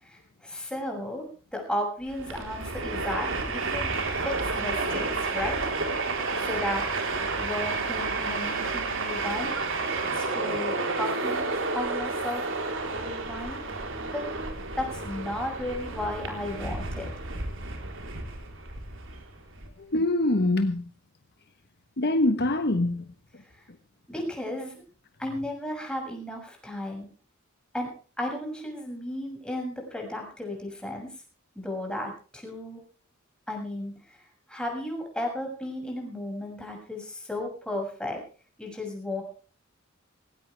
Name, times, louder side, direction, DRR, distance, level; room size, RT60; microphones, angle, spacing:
voice 1, 0.0-1.2 1.5-3.9 4.2-5.6 6.4-6.9 7.4-9.5 10.1-11.5 11.7-12.4 12.9-13.6 14.1-14.3 14.7-17.0 24.1-24.8 25.2-27.1 27.7-27.9 28.2-31.1 31.5-32.8 33.5-34.2 34.5-38.2 38.6-39.2, left 1 dB, 5° left, 6.8 m, -34 dB
Train, 2.1-19.7, right 3 dB, 65° right, 3.8 m, -31 dB
voice 2, 19.8-20.9 22.0-23.1, left 2 dB, 50° left, 1.2 m, -24 dB
18.5 x 18.0 x 3.4 m
head